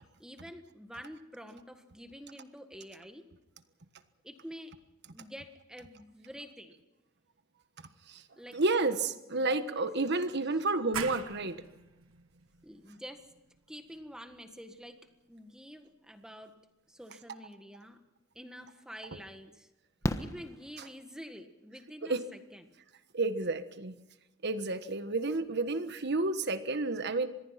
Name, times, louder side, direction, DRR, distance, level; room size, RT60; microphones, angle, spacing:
voice 1, 0.2-3.3 4.2-4.7 5.1-6.8 8.4-8.6 9.4-9.8 12.6-13.2 13.7-15.0 15.3-16.5 16.9-18.0 18.3-19.7 20.2-22.7, equal, 5° right, 6 dB, 1.6 m, -48 dB
voice 2, 8.5-11.6 22.1-22.2 23.1-23.9 24.4-27.3, right 3 dB, 55° right, 10 dB, 1.4 m, -30 dB
sound 1, 10.9-16.3, right 7 dB, 85° right, 1.5 m, -45 dB
Fireworks, 18.3-18.4 20.0-21.3 23.1-23.2 23.4-23.5, left 1 dB, 15° left, 1.2 m, -36 dB
25.5 x 21.0 x 5.9 m, 0.96 s
head